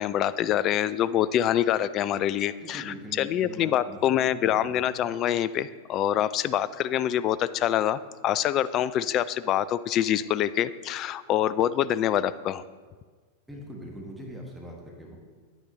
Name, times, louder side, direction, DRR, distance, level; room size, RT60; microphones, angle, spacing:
voice 1, 0.0-12.6, left 11 dB, 35° left, 15 dB, 0.3 m, -25 dB
voice 2, 2.6-4.9 13.5-15.2, equal, 5° right, -2 dB, 1.3 m, -42 dB
9.5 x 9.2 x 3.2 m, 1.5 s
figure-of-eight pair, 90°, 0 cm